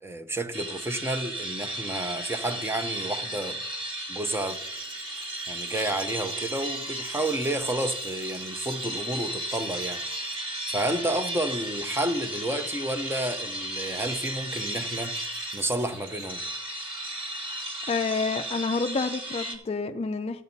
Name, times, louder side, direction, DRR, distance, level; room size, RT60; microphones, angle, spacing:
voice 1, 0.0-3.6 4.1-4.6 5.5-10.0 10.7-15.2 15.5-16.4, right 1 dB, 15° right, 0.6 m, -30 dB
sound 1, 0.5-19.6, right 1 dB, 30° right, 1.5 m, -35 dB
sound 2, 4.5-10.4 10.9-11.5 13.6-16.3, right 3 dB, 85° right, 2.5 m, -50 dB
voice 2, 17.9-20.4, left 4 dB, 35° left, 0.3 m, -28 dB
14.0 x 8.8 x 2.7 m
head